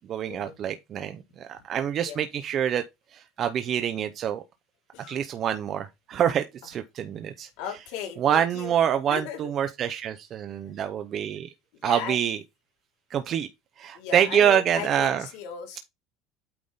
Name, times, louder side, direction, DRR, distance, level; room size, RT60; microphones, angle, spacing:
voice 1, 0.1-2.8 3.1-4.4 5.1-7.5 8.2-11.5 11.8-12.4 13.1-13.5 13.8-15.2, right 9 dB, 35° right, 0.6 m, -26 dB
voice 2, 7.6-8.7 9.1-9.5 11.8-12.2 13.9-15.8, left 8 dB, 75° left, 3.0 m, -37 dB
8.7 x 3.6 x 4.0 m
cardioid pair, 155°, 0 cm